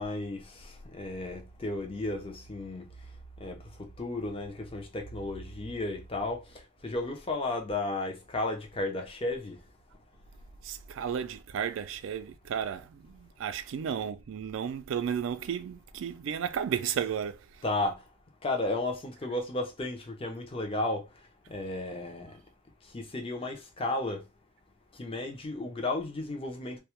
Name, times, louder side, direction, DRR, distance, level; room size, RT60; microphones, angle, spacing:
voice 1, 0.0-2.9 3.4-6.4 6.8-9.6 17.6-18.0 18.4-21.1 21.5-22.3 22.9-24.2 25.0-26.8, left 2 dB, 30° left, 0.5 m, -33 dB
voice 2, 10.6-17.5, right 8 dB, 75° right, 0.3 m, -33 dB
2.2 x 2.0 x 2.9 m
head